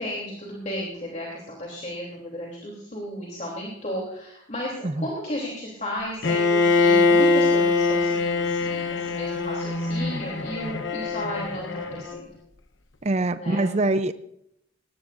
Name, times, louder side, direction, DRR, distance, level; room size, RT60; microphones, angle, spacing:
voice 1, 0.0-12.1 13.3-13.6, equal, 40° left, -2 dB, 3.2 m, -34 dB
Bowed string instrument, 6.2-12.2, left 3 dB, 75° left, 1.0 m, -23 dB
voice 2, 13.0-14.1, right 2 dB, 35° right, 11 dB, 0.5 m, -24 dB
19.0 x 18.5 x 2.6 m, 0.74 s
head